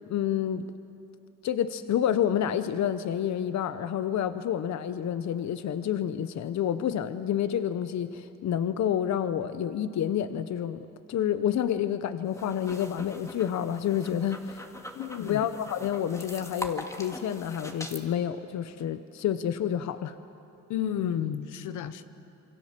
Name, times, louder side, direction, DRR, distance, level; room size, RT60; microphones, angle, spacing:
voice 1, 0.0-0.7 1.4-14.7 15.2-20.2, left 9 dB, 65° left, 11 dB, 0.9 m, -29 dB
sound 1, 12.3-18.0, left 1 dB, 10° left, 2.1 m, -42 dB
voice 2, 14.9-15.4 20.7-22.0, left 9 dB, 85° left, 11 dB, 1.1 m, -31 dB
28.0 x 24.0 x 7.5 m, 2.8 s
cardioid pair, 90°, 30 cm